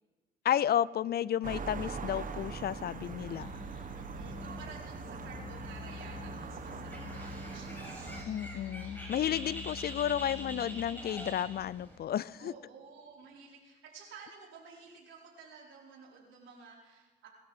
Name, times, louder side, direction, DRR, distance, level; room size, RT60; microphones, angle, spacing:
voice 1, 0.4-3.5 8.3-12.5, left 10 dB, 50° left, 20 dB, 0.4 m, -32 dB
sound 1, 1.4-8.2, right 5 dB, 40° right, 1.3 m, -42 dB
sound 2, 3.2-11.4, left 5 dB, 75° left, 4.6 m, -46 dB
voice 2, 4.0-8.2 12.4-17.3, right 5 dB, 75° right, -3 dB, 5.0 m, -52 dB
Bird, 6.9-12.0, equal, 10° left, 5.8 m, -45 dB
22.0 x 13.0 x 4.4 m, 1.3 s
cardioid pair, 90°, 20 cm